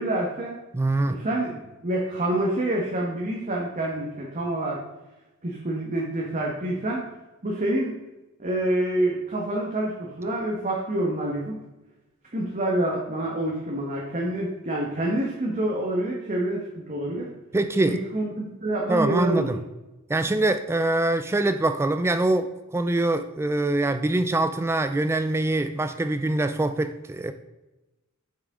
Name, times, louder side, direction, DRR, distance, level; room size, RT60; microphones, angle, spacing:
voice 1, 0.0-0.6 1.1-4.8 5.4-7.1 7.4-7.9 8.4-11.6 12.3-16.6 16.9-17.3 17.8-19.5, right 1 dB, 35° right, -2 dB, 1.3 m, -27 dB
voice 2, 0.7-1.2 17.5-18.0 18.9-19.6 20.1-27.3, right 2 dB, 10° right, 10 dB, 0.3 m, -24 dB
8.5 x 6.3 x 3.7 m, 1.0 s
head